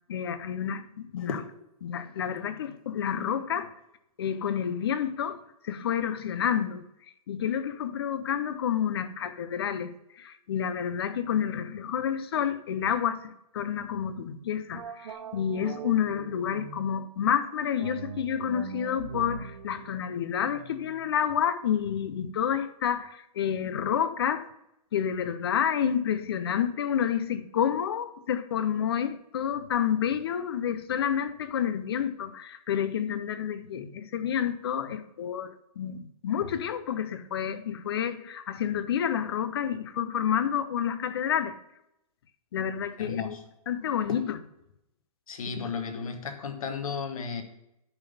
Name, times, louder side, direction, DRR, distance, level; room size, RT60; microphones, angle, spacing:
voice 1, 0.1-1.4 1.8-3.7 4.2-6.9 7.3-24.5 24.9-41.6 42.5-43.4 43.7-44.4 45.6-45.7, left 8 dB, 40° left, 0.5 m, -29 dB
sound 1, 14.7-17.0 17.8-21.1, right 7 dB, 60° right, 0.6 m, -42 dB
voice 2, 43.0-43.5 44.1-44.2 45.3-47.4, left 5 dB, 60° left, 1.4 m, -34 dB
10.5 x 4.0 x 5.3 m
hypercardioid pair, 170°, 20 cm